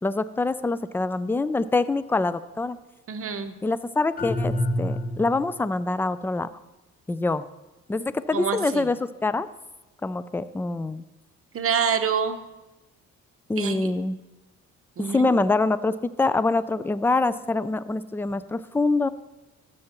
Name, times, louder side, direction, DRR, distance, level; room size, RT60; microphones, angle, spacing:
voice 1, 0.0-2.8 3.6-6.5 7.1-7.4 7.9-9.0 9.2-9.5 10.0-11.0 13.5-14.2 15.0-19.1, left 3 dB, 10° left, 15 dB, 0.3 m, -25 dB
voice 2, 3.1-3.5 8.3-8.9 11.5-12.4 13.6-13.9 15.0-15.3, right 6 dB, 45° right, 7 dB, 0.9 m, -26 dB
sound 1, 4.2-5.6, left 1 dB, 30° left, 0.9 m, -27 dB
13.5 x 7.7 x 3.0 m, 1.1 s
cardioid pair, 90°, 30 cm